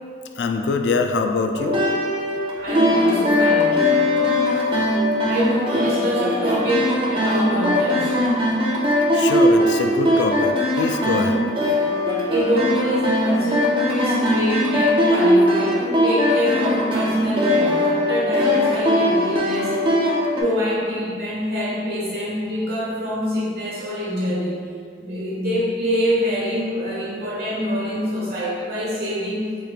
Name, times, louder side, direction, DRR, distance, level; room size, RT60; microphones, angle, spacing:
voice 1, 0.4-1.8 9.1-11.4, left 4 dB, 75° left, 5 dB, 0.3 m, -23 dB
sound 1, 1.6-20.4, left 1 dB, 30° right, 0.5 m, -20 dB
voice 2, 2.6-3.8 5.2-8.2 12.3-24.6 25.0-29.5, equal, 60° right, -7 dB, 1.3 m, -25 dB
4.9 x 3.0 x 2.4 m, 2.2 s
head